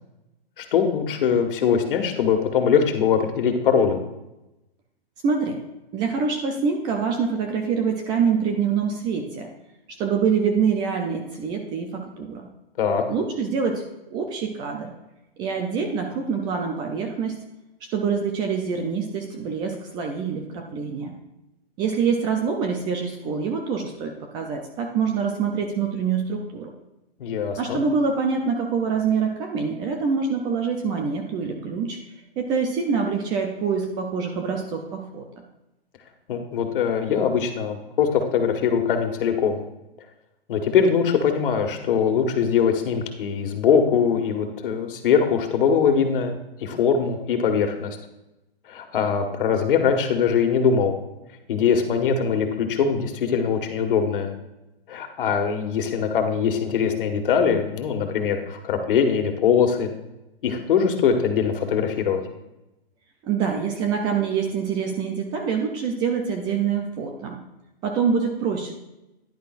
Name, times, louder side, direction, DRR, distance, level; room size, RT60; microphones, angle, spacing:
voice 1, 0.6-4.0 12.8-13.0 27.2-27.8 36.3-39.6 40.5-46.3 46.6-48.0 48.7-50.9 51.5-54.3 54.9-59.9 60.4-62.2, left 6 dB, 60° left, 5 dB, 1.7 m, -22 dB
voice 2, 5.2-5.6 5.9-9.5 9.9-12.5 13.1-13.8 14.1-14.9 15.4-17.4 17.8-21.1 21.8-26.7 27.6-32.0 32.4-35.2 63.2-67.4 67.8-68.7, right 6 dB, 15° right, 3 dB, 0.5 m, -25 dB
10.5 x 10.0 x 2.5 m, 0.95 s
hypercardioid pair, 150°, 31 cm